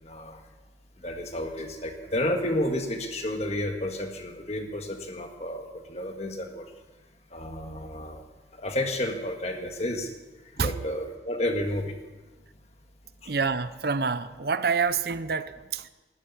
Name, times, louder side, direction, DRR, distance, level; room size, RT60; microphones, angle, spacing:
voice 1, 0.0-0.4 1.0-6.6 7.3-8.2 8.6-10.1 10.5-12.0 13.2-13.3, left 1 dB, 35° left, 4 dB, 1.7 m, -31 dB
voice 2, 13.3-15.9, right 5 dB, 55° right, 14 dB, 0.6 m, -27 dB
13.0 x 12.0 x 8.4 m, 1.2 s
head